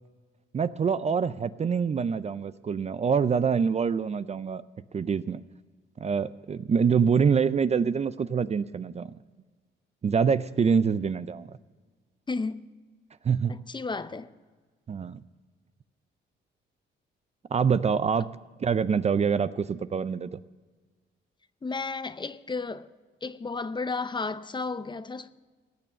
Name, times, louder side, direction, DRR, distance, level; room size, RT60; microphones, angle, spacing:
voice 1, 0.5-4.6 4.9-5.4 6.0-9.1 10.0-11.5 13.2-13.5 14.9-15.2 17.5-18.3 18.6-20.3, right 6 dB, 35° right, 0.5 m, -25 dB
voice 2, 12.3-12.7 13.5-14.3 21.6-22.9 23.2-25.3, left 4 dB, 25° left, 0.6 m, -33 dB
17.5 x 6.9 x 7.4 m
cardioid pair, 90°, 20 cm